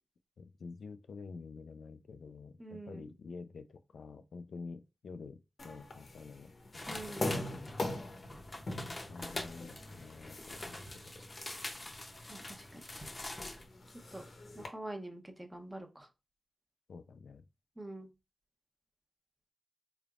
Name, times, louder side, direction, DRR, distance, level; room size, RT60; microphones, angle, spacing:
voice 1, 0.4-7.3 7.5-7.7 8.7-10.9 16.9-17.4, left 4 dB, 90° left, 0.3 m, -49 dB
voice 2, 2.6-3.0 6.9-7.5 12.3-12.8 14.1-14.2 14.5-16.1 17.8-18.1, right 2 dB, 15° right, 0.8 m, -45 dB
sound 1, 5.6-14.7, left 2 dB, 65° left, 0.8 m, -43 dB
sound 2, 6.7-13.6, left 1 dB, 30° left, 0.7 m, -45 dB
3.8 x 3.4 x 2.4 m
wide cardioid pair, 75°, 0 cm